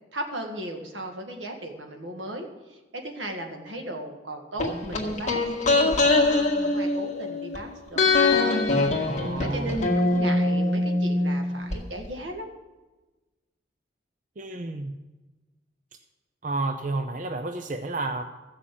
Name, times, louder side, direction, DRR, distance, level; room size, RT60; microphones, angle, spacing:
voice 1, 0.1-8.6 9.4-12.5, right 1 dB, 80° right, 3 dB, 1.8 m, -36 dB
sound 1, 4.6-7.6 8.0-11.8 12.0-12.1, left 2 dB, 40° left, 1.8 m, -23 dB
voice 2, 9.0-9.8 14.4-14.9 16.4-18.2, right 2 dB, 45° right, 7 dB, 0.6 m, -31 dB
14.5 x 6.2 x 7.7 m, 1.2 s
head